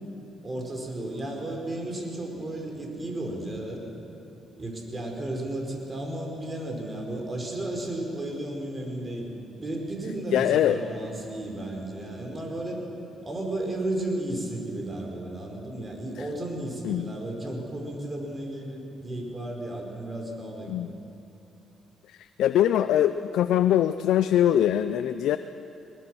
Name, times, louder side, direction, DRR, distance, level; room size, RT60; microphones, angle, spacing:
voice 1, 0.4-3.8 4.6-12.8 13.2-20.8, right 1 dB, 30° right, 1 dB, 4.6 m, -33 dB
voice 2, 10.3-10.8 16.2-16.3 16.8-17.1 20.7-21.0 22.1-25.4, left 11 dB, 80° left, 11 dB, 0.5 m, -23 dB
21.5 x 20.5 x 6.2 m, 2.9 s
cardioid pair, 90°, 0 cm